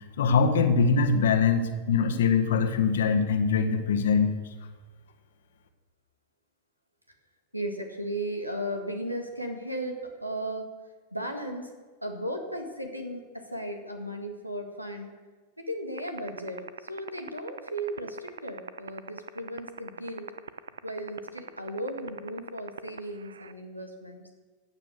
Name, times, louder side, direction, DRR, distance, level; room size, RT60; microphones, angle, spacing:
voice 1, 0.2-4.3, left 5 dB, 60° left, 6 dB, 1.5 m, -23 dB
voice 2, 7.5-10.7 11.1-11.7 12.0-15.1 15.6-20.3 20.8-24.2, right 1 dB, 90° right, 4 dB, 2.0 m, -36 dB
sound 1, 16.0-23.5, right 6 dB, 70° right, 0.5 m, -37 dB
15.5 x 8.8 x 6.6 m, 1.3 s
figure-of-eight pair, 90°, 0 cm